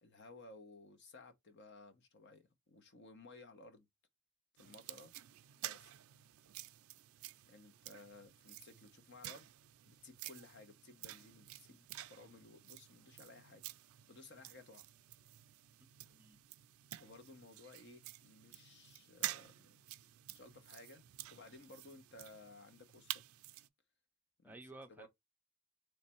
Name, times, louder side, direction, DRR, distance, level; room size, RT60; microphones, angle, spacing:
voice 1, 0.0-3.9 4.6-5.1 5.6-5.9 7.5-9.5 9.8-13.6 14.1-14.9 17.0-19.8 20.3-21.0 21.3-23.2 24.4-25.1, left 2 dB, 55° left, 0.9 m, -57 dB
sound 1, 4.6-23.7, right 15 dB, 75° right, 0.4 m, -50 dB
voice 2, 15.8-16.4 24.4-25.1, right 2 dB, 10° right, 0.4 m, -55 dB
3.2 x 3.2 x 4.4 m
head